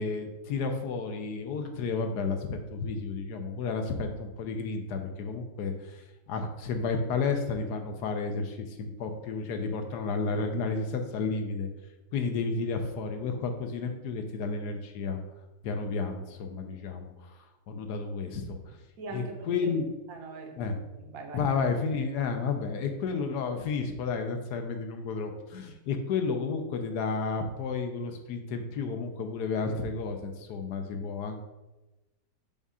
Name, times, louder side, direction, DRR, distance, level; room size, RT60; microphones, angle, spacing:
voice 1, 0.0-11.7 12.1-15.2 15.6-17.4 17.7-18.8 19.1-19.9 20.6-20.8 21.3-31.3, left 4 dB, 70° left, 6 dB, 1.1 m, -32 dB
voice 2, 19.0-19.8 20.1-21.5, right 4 dB, 55° right, 2 dB, 1.2 m, -42 dB
7.1 x 2.4 x 5.4 m, 1.1 s
omnidirectional pair, 2.0 m